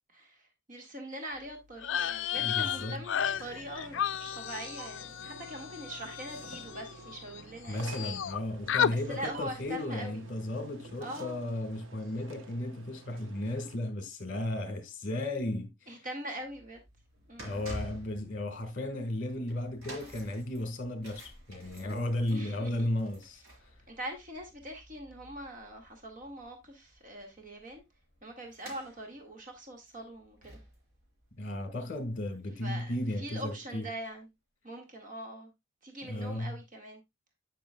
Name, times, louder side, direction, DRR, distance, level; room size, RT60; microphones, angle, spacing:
voice 1, 0.1-8.1 9.1-10.3 11.0-11.4 15.9-16.8 17.3-17.6 22.3-22.9 23.9-27.8 28.2-30.6 32.6-34.3 34.6-35.5 35.8-37.0, right 1 dB, 40° right, 1.7 m, -42 dB
sound 1, 1.8-7.4 7.7-8.4 8.7-8.9, left 9 dB, 60° left, 0.4 m, -33 dB
voice 2, 2.4-3.0 7.7-16.1 17.4-23.7 31.4-33.9 36.0-36.5, left 1 dB, 40° left, 1.5 m, -35 dB
sound 2, 3.1-13.8, right 3 dB, 70° right, 0.9 m, -50 dB
sound 3, 16.3-32.7 32.9-33.2 33.9-34.0, equal, 85° right, 4.0 m, -51 dB
10.0 x 5.9 x 2.2 m
head